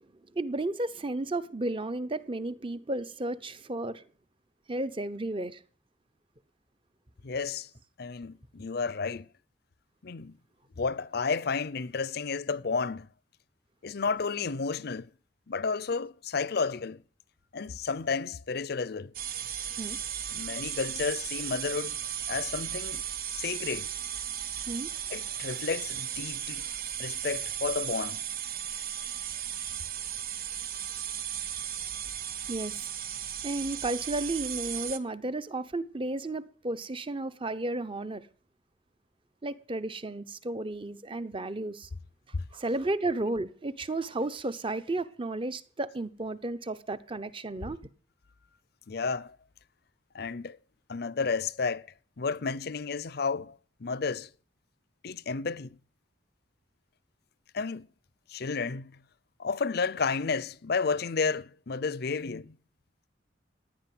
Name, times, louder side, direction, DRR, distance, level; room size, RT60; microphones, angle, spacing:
voice 1, 0.3-4.0 4.7-5.6 19.8-20.0 24.7-24.9 32.5-32.9 33.4-38.3 39.4-41.9 42.5-47.8, right 2 dB, 30° right, 0.9 m, -33 dB
voice 2, 7.2-7.7 8.0-9.3 10.0-10.3 10.8-13.1 13.8-15.1 15.5-17.0 17.5-19.1 20.3-22.0 22.3-23.0 23.3-23.9 25.1-26.7 27.0-28.2 42.3-42.4 48.9-49.4 50.1-50.6 50.9-51.9 52.2-54.3 55.0-55.8 57.5-57.9 58.3-58.9 59.4-62.6, left 4 dB, 60° left, 0.6 m, -32 dB
sound 1, 19.1-35.0, right 9 dB, 50° right, 1.2 m, -36 dB
16.0 x 10.0 x 7.8 m
head